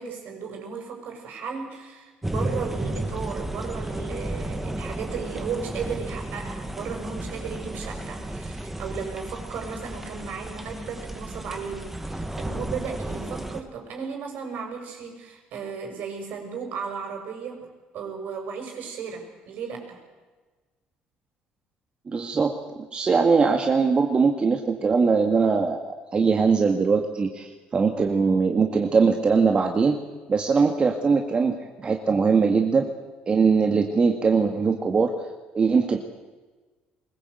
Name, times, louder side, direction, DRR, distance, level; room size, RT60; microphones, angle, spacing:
voice 1, 0.0-20.0, right 6 dB, 65° right, 3 dB, 6.1 m, -35 dB
sound 1, 2.2-13.6, right 1 dB, 10° right, 1.9 m, -33 dB
voice 2, 22.1-30.0 30.3-32.9 33.3-35.1 35.5-36.0, right 5 dB, 30° right, 3 dB, 2.0 m, -21 dB
21.5 x 20.0 x 8.0 m, 1.3 s
cardioid pair, 105°, 3 cm